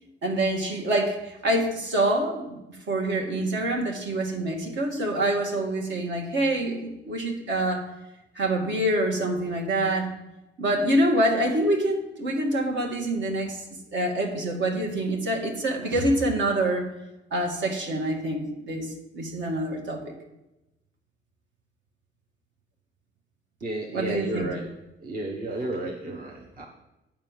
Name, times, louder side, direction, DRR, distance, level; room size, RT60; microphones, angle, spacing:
voice 1, 0.2-2.6 2.9-7.9 8.3-10.1 10.6-13.6 13.9-16.9 17.3-18.9 19.1-20.1 23.9-24.5, right 1 dB, 65° right, 1 dB, 1.9 m, -26 dB
voice 2, 23.6-24.7 25.0-26.7, right 1 dB, 45° right, -1 dB, 1.3 m, -32 dB
8.8 x 4.4 x 7.3 m, 0.94 s
cardioid pair, 90°, 20 cm